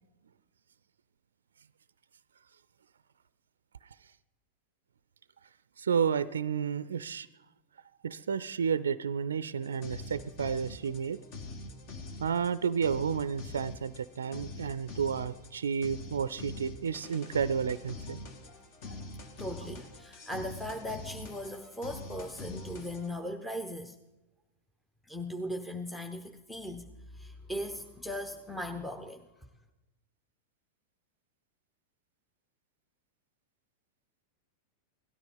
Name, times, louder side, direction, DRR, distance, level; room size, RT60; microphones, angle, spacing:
voice 1, 5.8-7.3 8.0-11.2 12.2-18.2, right 7 dB, 65° right, 17 dB, 0.4 m, -31 dB
sound 1, 9.6-23.1, left 2 dB, 45° left, 1.8 m, -44 dB
voice 2, 19.4-24.0 25.1-26.8 27.1-29.5, equal, 5° left, 5 dB, 0.9 m, -39 dB
17.0 x 13.0 x 5.4 m, 1.0 s
figure-of-eight pair, 90°, 0 cm